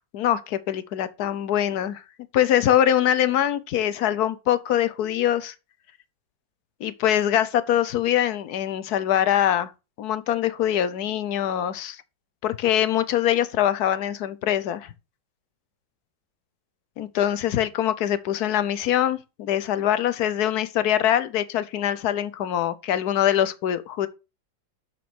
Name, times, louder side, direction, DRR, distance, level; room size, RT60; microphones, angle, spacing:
voice 1, 0.0-2.0 2.3-5.5 6.8-9.7 10.0-12.0 12.4-14.9 17.0-24.1, left 11 dB, 60° left, 1.1 m, -23 dB
6.9 x 6.1 x 6.1 m
omnidirectional pair, 2.1 m